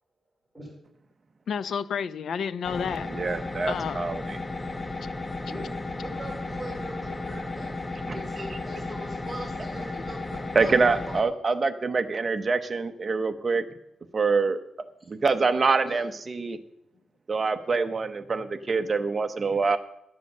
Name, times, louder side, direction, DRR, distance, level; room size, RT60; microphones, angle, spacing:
voice 1, 1.5-3.1 3.6-4.1, left 7 dB, 65° left, 15 dB, 0.5 m, -30 dB
sound 1, 2.6-11.2, left 2 dB, 20° left, 0.6 m, -34 dB
voice 2, 3.1-4.4 8.1-8.2 10.5-13.6 14.1-14.6 15.1-16.6 17.3-19.8, right 4 dB, 30° right, 9 dB, 0.9 m, -25 dB
voice 3, 5.5-7.8 8.1-10.7 11.1-11.2 15.8-16.0, right 1 dB, 5° right, -3 dB, 3.9 m, -41 dB
12.0 x 7.5 x 6.7 m, 0.79 s
wide cardioid pair, 145°, 0 cm